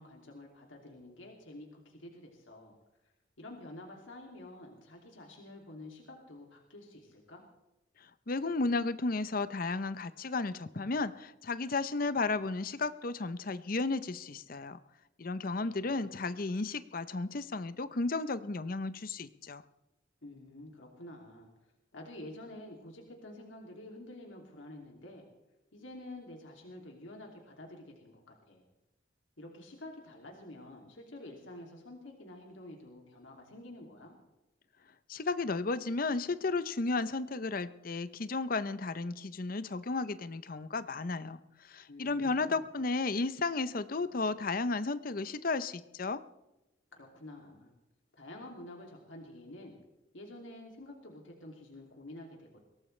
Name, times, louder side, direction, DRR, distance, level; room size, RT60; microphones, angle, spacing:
voice 1, 0.0-2.8 3.4-7.4 15.4-16.1 20.2-21.5 21.9-25.2 25.7-28.6 29.4-34.1 41.9-42.7 46.9-47.7 48.1-49.7 50.1-52.6, left 1 dB, 90° left, 0 dB, 2.7 m, -49 dB
voice 2, 8.3-14.8 15.2-19.6 35.1-41.4 41.6-46.2, left 3 dB, 50° left, 14 dB, 0.7 m, -33 dB
23.0 x 17.5 x 3.3 m, 0.96 s
head